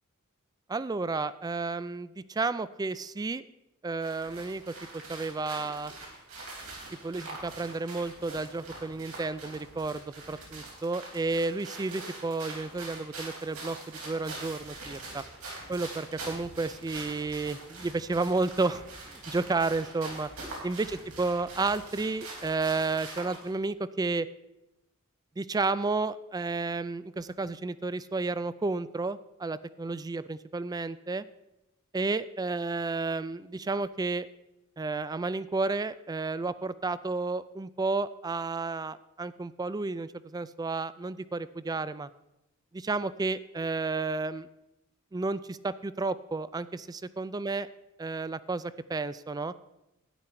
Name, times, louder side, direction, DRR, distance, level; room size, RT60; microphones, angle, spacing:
voice 1, 0.7-3.4 3.8-5.9 7.0-15.2 15.7-18.8 19.1-20.3 20.6-24.3 25.4-31.3 31.9-34.3 34.8-42.1 42.7-44.5 45.1-47.7 48.0-49.5, right 3 dB, 20° right, 16 dB, 0.3 m, -32 dB
sound 1, 4.0-23.5, right 2 dB, 85° right, 3.7 m, -44 dB
12.5 x 9.8 x 4.4 m, 0.94 s
head